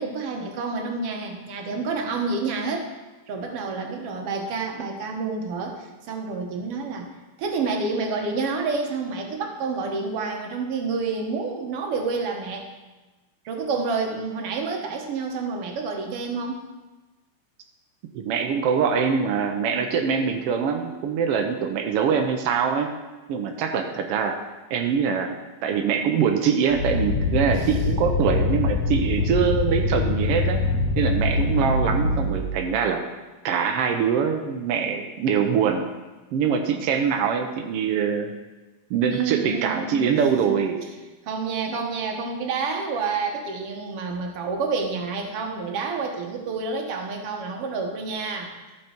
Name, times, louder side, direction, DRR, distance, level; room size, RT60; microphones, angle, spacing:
voice 1, 0.0-2.9 3.3-7.1 7.4-12.7 13.5-16.7 27.6-27.7 39.1-40.9 41.2-48.5, right 4 dB, 60° right, 2 dB, 1.8 m, -29 dB
voice 2, 18.1-22.9 23.3-24.4 24.7-30.6 31.0-33.0 33.4-35.9 36.3-38.3 38.9-40.8, right 6 dB, 85° right, 4 dB, 1.3 m, -23 dB
sound 1, 26.7-32.5, left 2 dB, 75° left, 0.8 m, -24 dB
13.0 x 6.7 x 4.4 m, 1.2 s
omnidirectional pair, 3.6 m